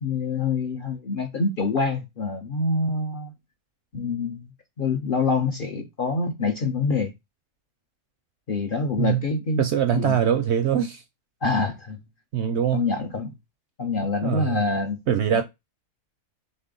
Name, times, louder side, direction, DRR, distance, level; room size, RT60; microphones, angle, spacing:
voice 1, 0.0-3.3 3.9-4.5 4.8-7.1 8.5-9.6 9.9-10.2 11.4-12.0 12.7-13.3 13.8-15.0, left 4 dB, 50° left, 0.7 m, -26 dB
voice 2, 9.6-11.0 12.3-12.8 14.2-14.6 15.1-15.4, right 9 dB, 65° right, 0.7 m, -23 dB
4.2 x 3.2 x 3.8 m
omnidirectional pair, 1.5 m